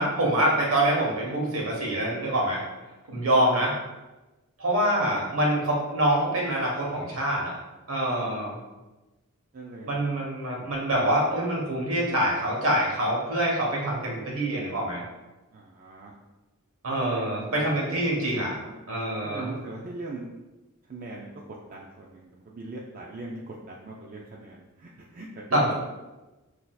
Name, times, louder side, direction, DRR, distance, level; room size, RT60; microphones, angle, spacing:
voice 1, 0.0-2.6 3.1-3.8 4.6-7.5 7.9-8.6 9.9-15.0 16.8-18.5 18.9-19.6 25.5-25.7, right 1 dB, 65° right, -2 dB, 1.2 m, -25 dB
voice 2, 3.3-3.7 8.1-8.4 9.5-10.0 15.5-16.1 16.9-18.0 19.2-20.3 20.9-21.3 21.6-25.7, right 2 dB, 40° right, -2 dB, 0.4 m, -40 dB
6.1 x 2.7 x 2.3 m, 1.1 s
head